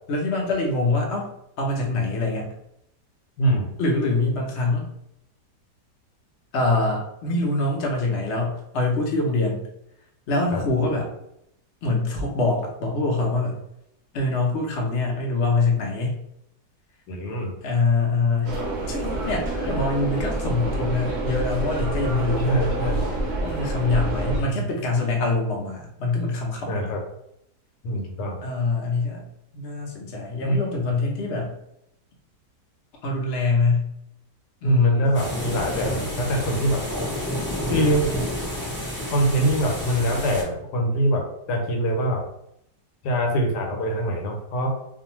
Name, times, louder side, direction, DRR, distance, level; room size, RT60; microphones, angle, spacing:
voice 1, 0.1-1.3 1.6-2.5 3.8-4.9 6.5-9.7 10.3-11.1 11.8-13.6 14.1-16.2 17.6-18.6 18.9-22.7 23.4-27.0 28.4-29.3 29.5-31.5 33.0-33.9 34.6-35.2, left 3 dB, 55° left, 0 dB, 0.8 m, -24 dB
voice 2, 3.4-3.7 10.5-10.6 17.1-17.5 22.5-23.1 24.3-24.6 26.7-27.0 27.8-28.4 30.4-30.6 34.6-36.8 37.7-38.1 39.1-41.2 41.5-42.2 43.0-44.7, right 1 dB, 80° left, 2 dB, 1.3 m, -23 dB
sound 1, 18.4-24.4, right 2 dB, 60° right, 0.6 m, -27 dB
sound 2, 35.1-40.4, equal, 15° left, 0.4 m, -29 dB
2.6 x 2.4 x 2.9 m, 0.78 s
omnidirectional pair, 1.8 m